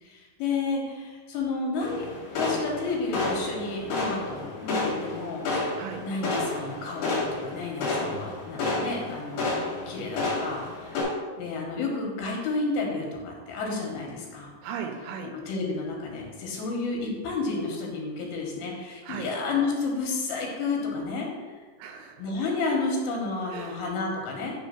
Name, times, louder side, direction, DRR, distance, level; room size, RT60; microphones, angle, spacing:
voice 1, 0.0-2.1 2.4-5.5 6.0-9.5 9.9-11.1 11.4-14.5 15.2-21.3 22.2-24.5, left 3 dB, 85° left, 0 dB, 3.0 m, -31 dB
sound 1, 1.8-11.0, left 2 dB, 60° left, 3.0 m, -31 dB
voice 2, 14.6-15.3 19.0-19.3 21.8-22.4 23.5-23.8, right 6 dB, 85° right, 5 dB, 2.3 m, -37 dB
6.3 x 3.1 x 5.6 m, 1.4 s
omnidirectional pair, 4.3 m